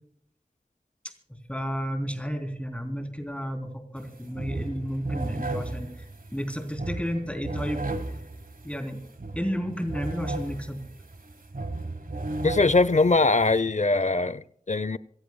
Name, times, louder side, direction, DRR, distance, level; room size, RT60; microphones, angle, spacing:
voice 1, 1.5-5.9 6.3-8.1 8.6-9.0 9.3-10.8, equal, 10° left, 3.6 m, -32 dB
sound 1, 4.0-4.1 4.3-13.6, right 2 dB, 75° right, 1.3 m, -35 dB
voice 2, 12.4-15.0, left 3 dB, 55° left, 0.7 m, -22 dB
26.5 x 15.5 x 2.3 m
wide cardioid pair, 40°, 15 cm